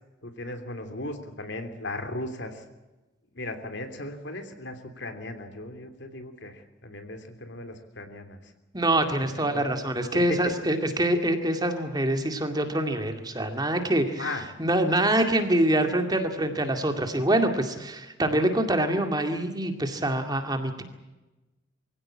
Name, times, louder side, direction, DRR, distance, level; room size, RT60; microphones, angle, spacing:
voice 1, 0.2-2.6 3.3-8.5 9.4-9.7 10.1-10.5 14.2-14.5, left 2 dB, 60° left, 7 dB, 3.1 m, -37 dB
voice 2, 8.7-14.2 14.6-20.8, right 1 dB, 20° right, 6 dB, 2.2 m, -25 dB
23.5 x 16.5 x 8.7 m, 1.1 s
head